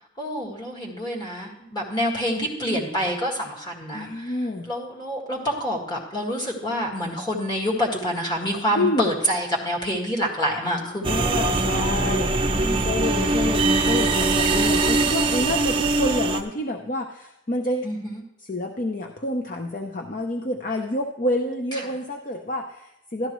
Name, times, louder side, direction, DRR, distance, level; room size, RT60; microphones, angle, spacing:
voice 1, 0.2-4.3 4.7-11.2 12.5-13.0 14.5-14.7 17.8-18.2, equal, 20° left, -1 dB, 1.8 m, -27 dB
voice 2, 2.6-3.2 3.9-4.7 8.7-9.1 10.7-17.9 18.4-23.3, left 1 dB, 40° left, 3 dB, 0.6 m, -28 dB
sound 1, 11.0-16.4, right 3 dB, 25° right, 0.6 m, -22 dB
12.0 x 12.0 x 3.1 m, 0.85 s
head